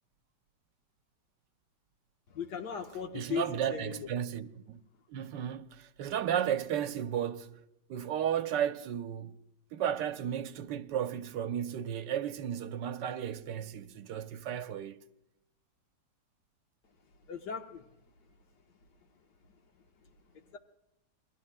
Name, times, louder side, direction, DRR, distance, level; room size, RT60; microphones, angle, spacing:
voice 1, 2.3-4.1 17.3-17.9 20.5-20.6, left 7 dB, 70° left, 1.8 m, -38 dB
voice 2, 3.1-4.8 5.1-7.6 7.9-9.3 9.7-15.0, right 9 dB, 85° right, 1.4 m, -34 dB
27.5 x 21.0 x 2.2 m
omnidirectional pair, 1.9 m